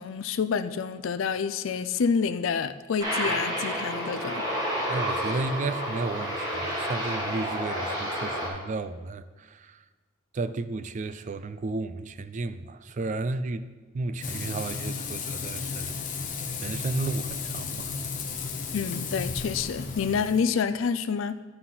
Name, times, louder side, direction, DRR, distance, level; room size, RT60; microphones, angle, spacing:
voice 1, 0.0-4.4 18.7-21.4, left 6 dB, 70° left, 0.4 m, -28 dB
Aircraft, 3.0-8.5, equal, 20° right, 1.9 m, -30 dB
voice 2, 4.9-9.2 9.6-9.7 10.3-13.7 13.9-16.0 16.6-17.9, right 3 dB, 35° right, 0.3 m, -33 dB
Frying (food), 14.2-20.6, left 5 dB, 40° left, 0.7 m, -34 dB
11.0 x 4.0 x 5.8 m
head